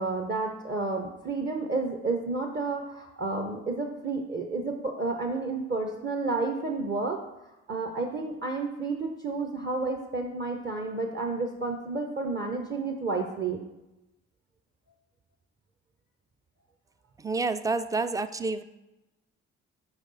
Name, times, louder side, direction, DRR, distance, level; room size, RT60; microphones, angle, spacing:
voice 1, 0.0-7.2 7.7-13.6, right 3 dB, 30° right, 4 dB, 0.8 m, -31 dB
voice 2, 17.2-18.6, right 3 dB, 10° right, 12 dB, 0.3 m, -29 dB
5.2 x 4.8 x 4.0 m, 0.98 s
hypercardioid pair, 45°, 35 cm